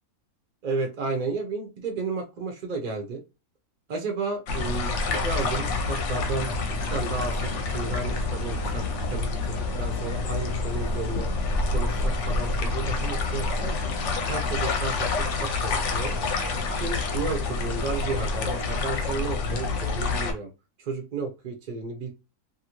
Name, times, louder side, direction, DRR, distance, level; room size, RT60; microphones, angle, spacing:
voice 1, 0.6-3.2 3.9-6.5 6.9-8.8 9.1-11.3 11.7-14.0 14.3-15.1 15.4-16.1 16.7-20.5 20.8-22.1, right 4 dB, 60° right, 3 dB, 0.4 m, -32 dB
sound 1, 4.5-20.3, left 3 dB, 60° left, 0.8 m, -27 dB
2.7 x 2.5 x 2.9 m, 0.29 s
omnidirectional pair, 1.6 m